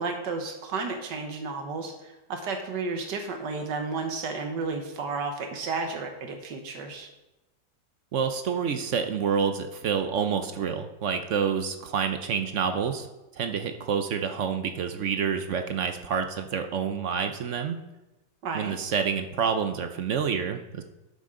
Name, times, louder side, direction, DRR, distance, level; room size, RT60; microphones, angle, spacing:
voice 1, 0.0-7.1 18.4-18.8, right 4 dB, 85° right, 5 dB, 1.7 m, -32 dB
voice 2, 8.1-13.1 13.3-17.8 18.5-20.8, right 6 dB, 60° right, 7 dB, 0.8 m, -28 dB
11.5 x 7.6 x 3.8 m, 1.0 s
omnidirectional pair, 1.8 m